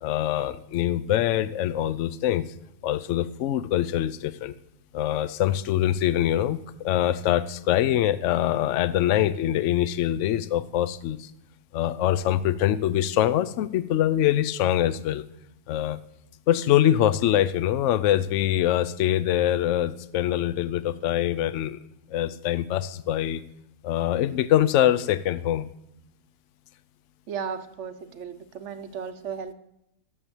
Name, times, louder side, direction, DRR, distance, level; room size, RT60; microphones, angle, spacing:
voice 1, 0.0-2.4 2.8-4.5 4.9-11.3 11.7-15.2 15.7-16.0 16.5-21.8 22.1-23.4 23.8-25.7, left 12 dB, 65° left, 16 dB, 0.8 m, -24 dB
voice 2, 27.3-29.5, right 7 dB, 55° right, 10 dB, 0.9 m, -35 dB
11.0 x 7.3 x 7.1 m, 0.82 s
omnidirectional pair, 1.7 m